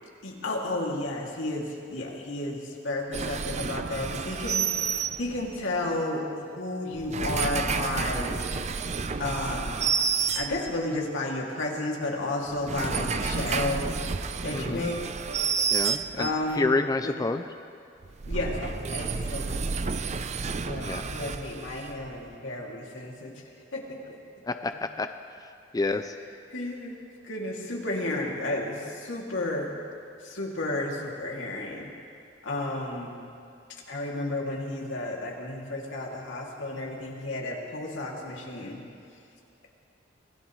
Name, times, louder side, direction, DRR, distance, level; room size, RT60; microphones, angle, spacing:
voice 1, 0.2-8.4 9.2-9.9 10.3-13.9 14.4-15.0 16.2-16.7 17.0-17.1 18.3-19.7 20.6-23.3 23.7-23.8 24.1-24.2 26.5-27.0 27.2-29.7 30.2-31.9 32.4-33.2 33.9-38.8, left 2 dB, 90° left, -2 dB, 2.6 m, -32 dB
sound 1, 3.1-5.7 6.9-11.0 12.5-16.5 18.0-22.2, right 5 dB, 35° right, 0.5 m, -30 dB
voice 2, 14.5-14.9 15.7-16.3 16.6-17.4 20.8-21.0 24.5-25.1 25.7-26.1, left 3 dB, 20° left, 8 dB, 0.4 m, -28 dB
25.5 x 16.5 x 3.2 m, 2.4 s
head